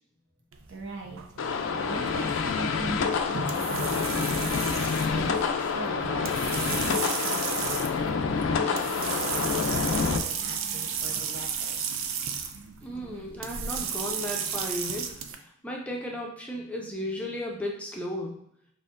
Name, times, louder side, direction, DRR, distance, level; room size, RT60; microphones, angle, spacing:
sound 1, 0.5-15.4, right 7 dB, 80° right, 0.4 m, -34 dB
voice 1, 0.7-1.2 1.6-4.6 5.1-5.3 5.6-11.8, right 2 dB, 55° right, 0 dB, 0.8 m, -41 dB
sound 2, 1.4-10.2, left 5 dB, 70° left, 0.4 m, -27 dB
voice 2, 12.8-15.1 15.6-18.4, left 1 dB, 5° left, -1 dB, 0.4 m, -34 dB
4.3 x 3.5 x 2.5 m, 0.72 s
head